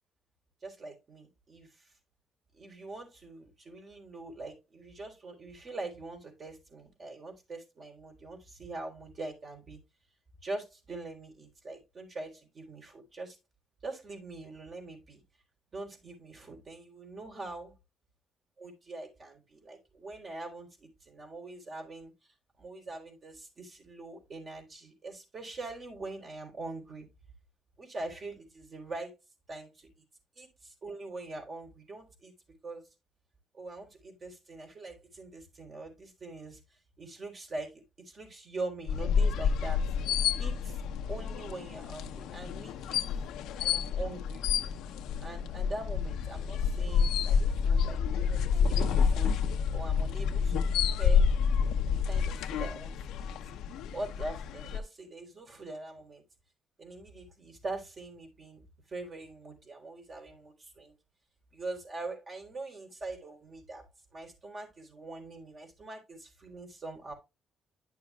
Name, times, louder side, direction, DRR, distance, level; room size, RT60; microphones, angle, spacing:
voice 1, 0.6-1.9 2.5-9.8 10.4-13.4 13.8-15.2 15.7-17.7 18.6-22.1 22.6-27.1 27.8-29.1 29.5-29.9 30.4-32.3 32.6-32.9 33.5-36.6 37.0-39.8 40.4-40.8 41.1-43.3 43.6-44.4 45.2-49.3 49.7-51.3 51.9-53.3 53.9-56.2 56.8-58.6 58.9-60.9 61.5-63.9 64.1-67.1, right 2 dB, 45° right, 2 dB, 4.1 m, -43 dB
sound 1, 38.9-54.8, left 6 dB, 90° left, 0.8 m, -29 dB
11.0 x 6.7 x 2.4 m, 0.24 s
cardioid pair, 90°, 0 cm